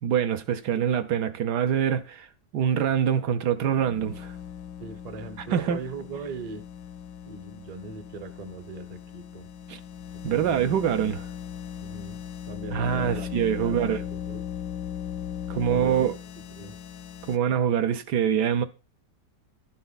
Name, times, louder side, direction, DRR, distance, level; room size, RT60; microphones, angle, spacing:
voice 1, 0.0-2.3 2.5-4.3 5.5-5.8 9.7-9.8 10.2-11.3 12.7-14.0 15.5-16.1 17.3-18.7, right 9 dB, 70° right, 1.4 m, -25 dB
sound 1, 3.5-17.4, left 9 dB, 85° left, 1.3 m, -38 dB
voice 2, 4.8-6.6 7.3-9.5 10.1-10.6 11.8-13.3 13.6-14.5 15.7-16.1 16.6-16.8, right 4 dB, 35° right, 0.7 m, -40 dB
11.5 x 8.1 x 4.1 m
omnidirectional pair, 1.9 m